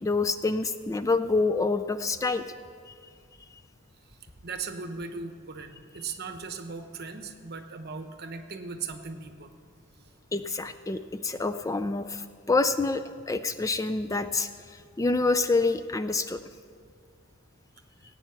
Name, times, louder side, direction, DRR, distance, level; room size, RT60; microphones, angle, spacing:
voice 1, 0.0-2.4 2.9-3.0 10.3-16.4, left 3 dB, 15° left, 11 dB, 0.3 m, -27 dB
voice 2, 4.4-9.5 9.9-10.0, right 4 dB, 55° right, 7 dB, 1.0 m, -38 dB
17.5 x 9.1 x 5.8 m, 2.1 s
head